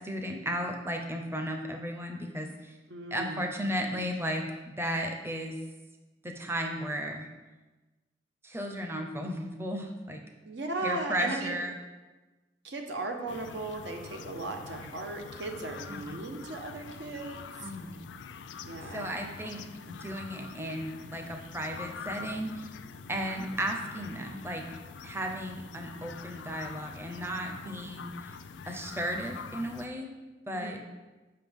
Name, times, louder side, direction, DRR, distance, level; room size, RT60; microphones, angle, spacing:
voice 1, 0.0-2.7 3.1-5.6 6.2-7.3 8.4-10.2 10.8-11.7 15.9-16.2 17.6-18.0 18.9-19.6 19.9-22.5 23.1-24.7 25.0-28.1 28.7-30.1 30.5-30.8, equal, 15° right, 3 dB, 0.6 m, -34 dB
voice 2, 2.9-3.5 10.5-11.6 12.6-17.7 18.6-19.1 30.5-30.8, right 2 dB, 85° right, 3 dB, 0.9 m, -37 dB
sound 1, 13.3-29.9, left 5 dB, 90° left, 0.4 m, -45 dB
7.6 x 5.6 x 3.6 m, 1.2 s
head